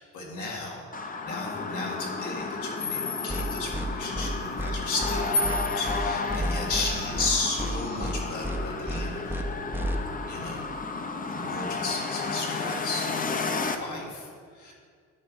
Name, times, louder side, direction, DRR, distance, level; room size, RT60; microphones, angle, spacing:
voice 1, 0.0-9.8 10.3-10.6 11.3-13.2 13.7-14.7, left 3 dB, 75° left, -2 dB, 2.0 m, -34 dB
sound 1, 0.9-13.8, left 4 dB, 30° left, 0.7 m, -32 dB
sound 2, 3.3-3.4 3.7-3.9 4.1-4.3 4.6-4.7 5.0-5.2 5.4-5.6 5.9-6.0 6.3-6.9 7.1-7.3 7.6-7.7 8.0-8.2 8.4-8.6 8.9-9.0 9.3-9.4 9.7-9.9, equal, 5° right, 0.6 m, -31 dB
10.0 x 4.8 x 5.5 m, 2.1 s
cardioid pair, 90°, 30 cm